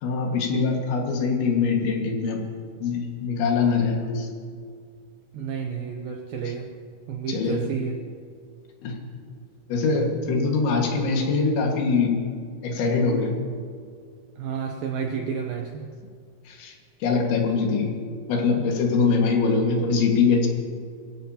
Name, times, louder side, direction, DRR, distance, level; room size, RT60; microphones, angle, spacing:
voice 1, 0.0-2.5 2.8-4.3 6.5-6.6 7.3-7.7 8.8-9.0 9.7-12.2 12.6-13.4 16.5-16.7 17.0-18.0 18.3-20.5, left 4 dB, 80° left, 1 dB, 4.1 m, -23 dB
voice 2, 5.3-6.7 7.1-8.0 14.4-15.9, right 6 dB, 80° right, 2 dB, 2.1 m, -31 dB
23.5 x 15.5 x 2.9 m, 2.2 s
omnidirectional pair, 5.3 m